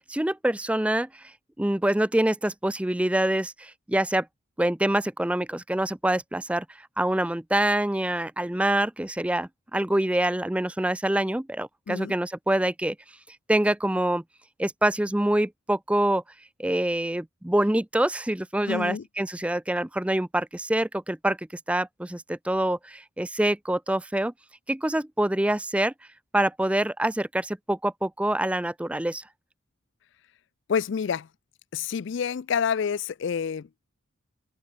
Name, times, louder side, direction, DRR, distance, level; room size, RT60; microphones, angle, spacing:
voice 1, 0.1-1.3 1.6-4.3 4.6-13.0 13.5-14.2 14.6-16.2 16.6-21.4 21.7-24.3 24.7-25.9 26.3-29.2, right 1 dB, 5° right, 0.4 m, -25 dB
voice 2, 18.7-19.0 30.7-31.3 31.7-33.7, left 6 dB, 55° left, 0.4 m, -28 dB
head